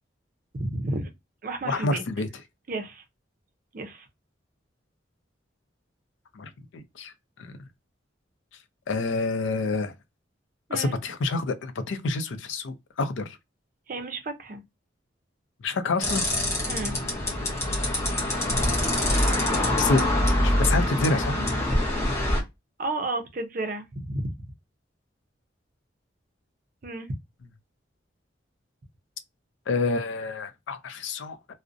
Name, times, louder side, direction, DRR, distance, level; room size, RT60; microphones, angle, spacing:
voice 1, 0.5-1.1 1.4-2.0 2.7-3.0 3.7-4.1 10.7-10.9 13.9-14.6 16.7-17.0 22.8-24.3 26.8-27.1, right 2 dB, 45° right, 0.5 m, -32 dB
voice 2, 1.6-2.3 6.3-7.1 7.4-7.6 8.9-9.9 10.7-13.4 15.6-16.2 19.8-20.1 20.4-21.3 29.7-31.5, left 3 dB, 80° left, 0.4 m, -28 dB
sound 1, 16.0-22.4, left 1 dB, 15° left, 0.7 m, -24 dB
2.5 x 2.0 x 2.5 m
head